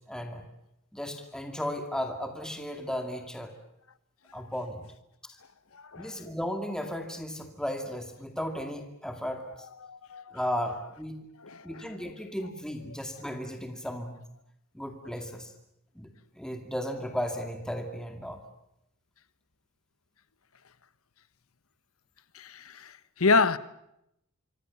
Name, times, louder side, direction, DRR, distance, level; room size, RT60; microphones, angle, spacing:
voice 1, 0.1-0.4 0.9-3.5 4.3-4.8 6.0-9.7 10.3-11.2 11.6-14.2 14.7-15.5 16.0-16.1 16.4-18.4, equal, 5° left, 2.3 m, -35 dB
voice 2, 9.8-10.4 11.4-11.8 22.3-22.9 23.2-23.6, left 4 dB, 85° left, 1.2 m, -27 dB
26.0 x 25.0 x 7.2 m
head